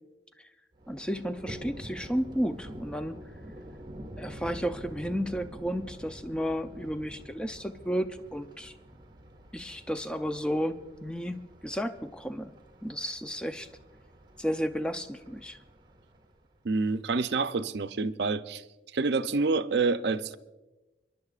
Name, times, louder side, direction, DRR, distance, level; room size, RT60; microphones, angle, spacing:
Thunder, 0.7-16.7, right 1 dB, 25° right, 1.6 m, -47 dB
voice 1, 0.9-3.2 4.2-8.7 9.5-12.5 12.8-13.7 14.4-15.6, equal, 5° left, 0.4 m, -33 dB
voice 2, 16.6-18.6 18.9-20.4, right 4 dB, 65° right, 0.5 m, -27 dB
29.5 x 11.5 x 2.4 m
head